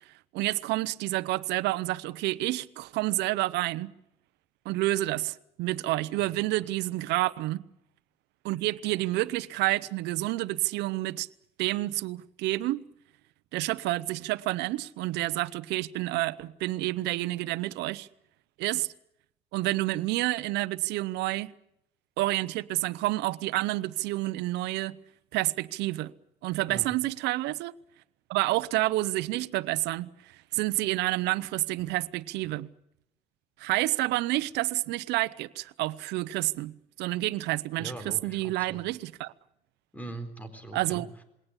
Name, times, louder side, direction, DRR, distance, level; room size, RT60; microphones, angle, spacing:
voice 1, 0.3-3.9 4.6-7.6 8.4-11.3 11.6-12.8 13.5-18.1 18.6-18.9 19.5-21.5 22.2-25.0 25.3-26.1 26.4-27.7 28.3-32.7 33.6-39.3 40.7-41.1, right 18 dB, 90° right, 0.8 m, -29 dB
voice 2, 37.8-38.8 39.9-41.2, right 2 dB, 10° left, 4.2 m, -41 dB
21.5 x 18.0 x 9.8 m
cardioid pair, 110°, 17 cm